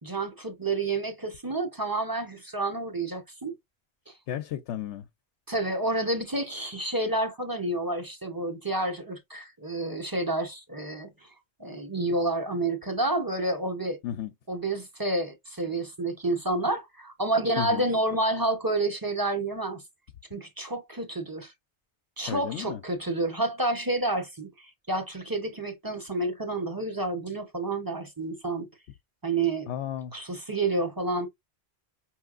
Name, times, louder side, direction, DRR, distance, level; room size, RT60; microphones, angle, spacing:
voice 1, 0.0-3.5 4.1-4.2 5.5-11.3 11.6-14.0 14.5-19.8 20.3-21.5 22.2-28.7 29.2-29.7 30.1-31.3, right 2 dB, 20° right, 0.7 m, -29 dB
voice 2, 4.3-5.1 14.0-14.3 17.6-17.8 22.3-22.8 29.7-30.1, left 10 dB, 85° left, 0.9 m, -33 dB
5.5 x 2.9 x 2.4 m
omnidirectional pair, 1.1 m